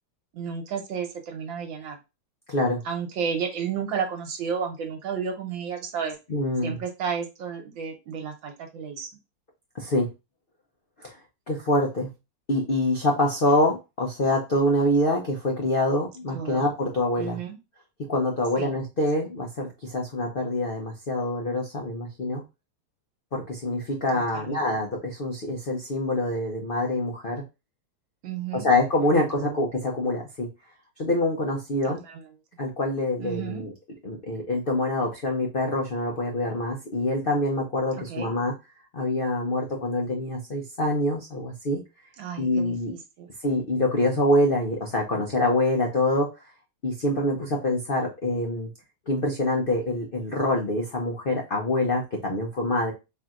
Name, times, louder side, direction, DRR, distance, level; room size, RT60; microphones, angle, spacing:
voice 1, 0.3-2.0 2.8-6.2 6.6-9.1 16.3-16.6 17.2-17.6 18.6-18.7 24.1-24.6 28.2-28.7 29.2-29.6 32.0-32.2 33.2-33.6 38.1-38.3 42.2-43.3, right 6 dB, 75° right, 5 dB, 1.6 m, -32 dB
voice 2, 2.5-2.8 6.3-6.8 9.7-10.1 11.0-11.2 11.5-12.1 12.5-17.4 18.1-22.4 23.3-27.4 28.5-30.5 31.0-32.0 32.6-33.7 34.0-38.5 38.9-41.8 42.4-42.9 43.4-46.3 46.8-48.7 49.1-52.9, left 1 dB, 90° left, 0 dB, 0.4 m, -25 dB
4.4 x 3.4 x 2.4 m, 0.25 s
omnidirectional pair, 2.2 m